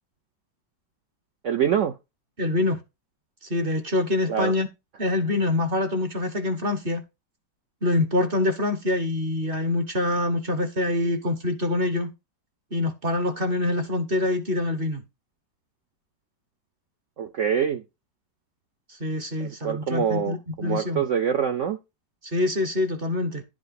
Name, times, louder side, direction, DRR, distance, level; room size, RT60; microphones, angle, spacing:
voice 1, 1.4-2.0 4.3-4.5 17.2-17.8 19.4-21.8, right 8 dB, 75° right, 0.7 m, -25 dB
voice 2, 2.4-2.8 3.5-4.7 5.0-7.0 7.8-12.1 12.7-15.0 19.0-21.0 22.2-23.4, left 2 dB, 35° right, 1.0 m, -25 dB
11.0 x 5.0 x 4.0 m
omnidirectional pair, 2.0 m